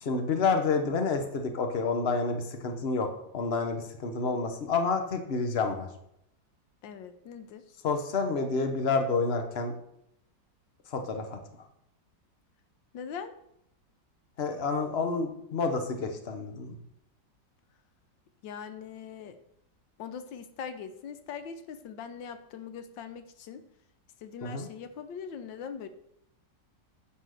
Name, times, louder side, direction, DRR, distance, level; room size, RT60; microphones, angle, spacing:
voice 1, 0.0-3.1 3.3-5.9 7.8-9.7 10.9-11.4 14.4-16.8 24.4-24.7, left 4 dB, 35° left, 5 dB, 1.3 m, -29 dB
voice 2, 6.8-7.7 12.9-13.3 18.4-19.4 20.0-23.6 24.2-25.9, left 7 dB, 90° left, 10 dB, 1.6 m, -41 dB
10.0 x 6.1 x 6.6 m, 0.76 s
omnidirectional pair, 2.0 m